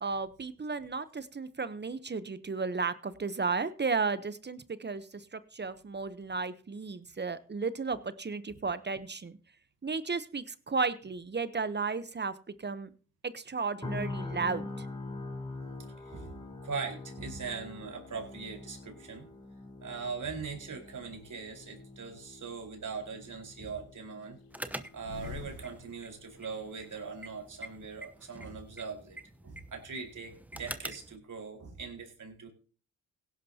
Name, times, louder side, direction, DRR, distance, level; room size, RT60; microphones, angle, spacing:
voice 1, 0.0-9.3 9.8-12.9 13.2-14.9, right 4 dB, 30° right, 14 dB, 0.9 m, -34 dB
sound 1, 13.8-27.8 28.2-28.4, left 2 dB, 10° left, 4.2 m, -45 dB
voice 2, 16.0-16.3 16.6-19.2 19.8-24.4 24.9-29.2 29.4-32.5, right 5 dB, 55° right, 2 dB, 4.6 m, -41 dB
sound 2, 20.1-20.3 20.8-21.7 22.2-23.0 23.3-26.4 26.7-26.8 27.0-27.8, left 8 dB, 80° left, 1.1 m, -48 dB
sound 3, 24.5-31.2, right 1 dB, 5° right, 1.0 m, -46 dB
17.0 x 11.0 x 2.9 m, 0.40 s
supercardioid pair, 60°, 37 cm